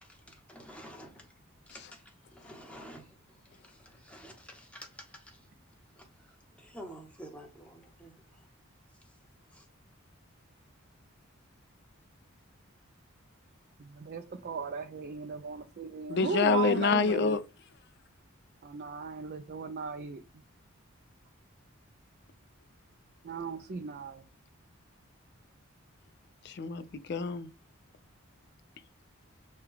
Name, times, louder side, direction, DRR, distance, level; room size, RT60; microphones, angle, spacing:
voice 1, 0.0-1.3 1.7-5.5 5.9-8.5 9.0-9.1 9.5-9.7, equal, 5° left, 0.9 m, -50 dB
voice 2, 13.8-17.4 18.6-20.2 23.2-24.2, right 4 dB, 45° right, 0.4 m, -37 dB
voice 3, 16.1-17.4 26.4-27.5, left 4 dB, 50° left, 0.4 m, -27 dB
6.5 x 2.3 x 3.4 m
head